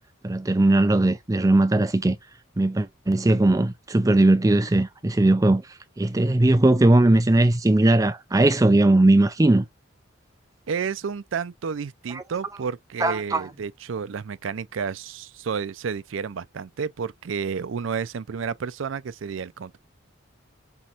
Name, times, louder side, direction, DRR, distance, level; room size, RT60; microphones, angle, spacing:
voice 1, 0.2-2.2 2.6-5.6 6.0-9.7 12.1-12.2 13.0-13.5, right 2 dB, 15° right, 0.5 m, -19 dB
voice 2, 10.7-19.8, right 6 dB, 75° right, 0.4 m, -31 dB
5.7 x 3.0 x 2.5 m
head